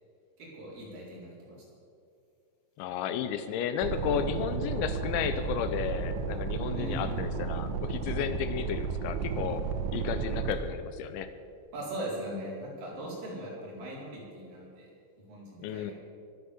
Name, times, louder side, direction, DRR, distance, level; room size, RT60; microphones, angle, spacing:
voice 1, 0.4-1.6 6.7-7.3 11.7-14.9 15.2-15.9, right 1 dB, 45° right, -5 dB, 5.7 m, -40 dB
voice 2, 2.8-9.6 9.9-11.3 15.6-15.9, left 8 dB, 80° left, 10 dB, 2.8 m, -33 dB
sound 1, 3.8-10.5, right 5 dB, 70° right, 3.0 m, -33 dB
23.0 x 8.1 x 7.1 m, 2.5 s
omnidirectional pair, 5.7 m